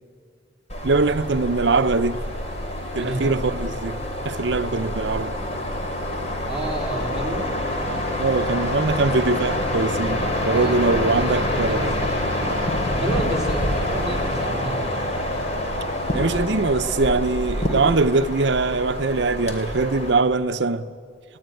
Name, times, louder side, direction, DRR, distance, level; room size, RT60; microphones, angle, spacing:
sound 1, 0.7-20.1, left 1 dB, 40° left, 3.1 m, -26 dB
voice 1, 0.8-2.3 2.9-4.0 4.2-5.4 8.2-12.1 16.1-20.9, right 3 dB, 70° right, 0.7 m, -22 dB
voice 2, 3.0-3.4 6.5-7.5 10.5-12.6 12.9-15.1, right 1 dB, 5° right, 3.9 m, -30 dB
22.0 x 18.0 x 9.2 m
head